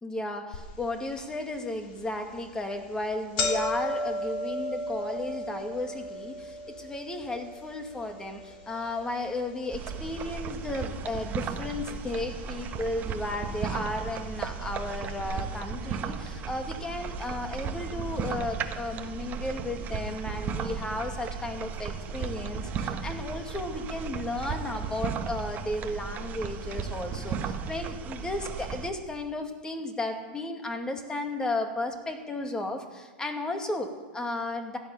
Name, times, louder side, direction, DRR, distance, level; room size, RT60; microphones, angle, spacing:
voice 1, 0.0-34.8, left 2 dB, 15° left, 5 dB, 2.3 m, -34 dB
sound 1, 0.5-0.6 1.2-1.3 2.1-2.3 2.6-2.7 3.0-11.2 11.5-12.2 13.0-13.1 14.1-14.2 14.4-14.5 15.1-15.2, left 1 dB, 60° left, 3.4 m, -35 dB
sound 2, 9.7-28.9, right 6 dB, 30° right, 1.3 m, -35 dB
16.0 x 12.0 x 7.3 m, 1.3 s
hypercardioid pair, 120°, 6 cm